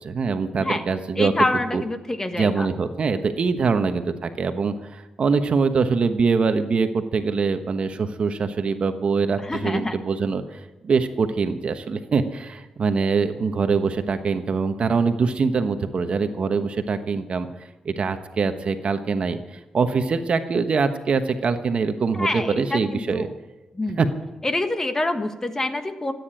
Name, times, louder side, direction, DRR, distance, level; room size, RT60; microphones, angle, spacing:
voice 1, 0.0-1.3 1.7-1.8 2.4-17.5 17.8-23.3 24.0-24.1, right 5 dB, 55° right, 8 dB, 1.1 m, -23 dB
voice 2, 1.2-2.7 9.4-10.0 22.1-23.3 23.7-24.0 24.4-26.1, left 2 dB, 20° left, 8 dB, 1.4 m, -26 dB
14.5 x 9.6 x 9.0 m, 1.1 s
cardioid pair, 85°, 2 cm